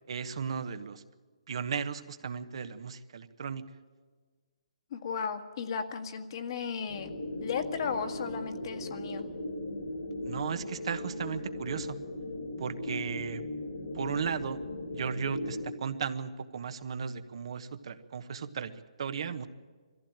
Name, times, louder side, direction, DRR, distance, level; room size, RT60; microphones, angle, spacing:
voice 1, 0.1-1.0 1.5-3.6 10.2-12.0 12.6-13.4 13.9-14.6 14.9-18.7 19.0-19.5, right 6 dB, 60° right, 10 dB, 1.2 m, -35 dB
voice 2, 4.9-7.1 7.4-9.2, left 6 dB, 50° left, 7 dB, 1.7 m, -35 dB
sound 1, 6.9-15.7, left 1 dB, 70° left, 3.7 m, -38 dB
21.0 x 15.0 x 8.9 m, 1.5 s
hypercardioid pair, 155°, 3 cm